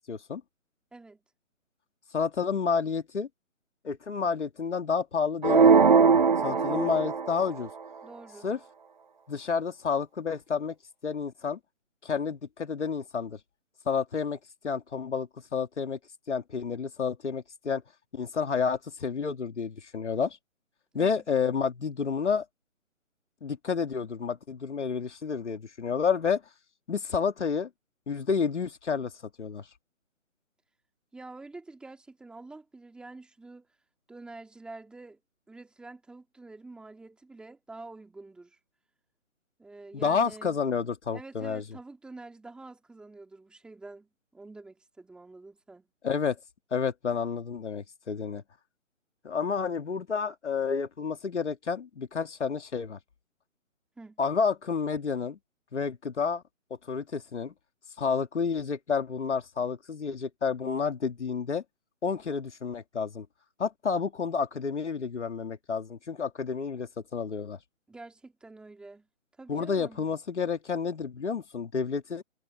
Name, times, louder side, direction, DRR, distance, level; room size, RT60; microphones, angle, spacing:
voice 1, 0.1-0.4 2.1-3.3 3.8-5.7 6.4-7.7 8.4-8.6 9.3-10.8 11.0-11.6 12.0-13.4 13.9-14.4 14.6-16.0 16.3-17.8 18.1-20.4 20.9-22.4 23.4-26.4 26.9-27.7 28.1-29.1 29.4-29.6 39.9-41.6 46.0-46.4 46.7-48.4 49.2-53.0 54.2-55.4 55.7-56.4 56.9-57.5 58.0-61.6 62.0-63.3 63.6-67.6 69.5-72.2, left 5 dB, 55° left, 2.5 m, -30 dB
sound 1, 5.4-7.5, right 5 dB, 35° right, 0.7 m, -20 dB
voice 2, 6.5-7.0 8.0-8.5 20.9-21.2 31.1-33.7 34.1-35.2 35.5-38.6 39.6-40.6 41.1-45.8 54.0-54.2 67.9-69.1 69.4-70.1, right 3 dB, ahead, 2.6 m, -47 dB
figure-of-eight pair, 160°, 41 cm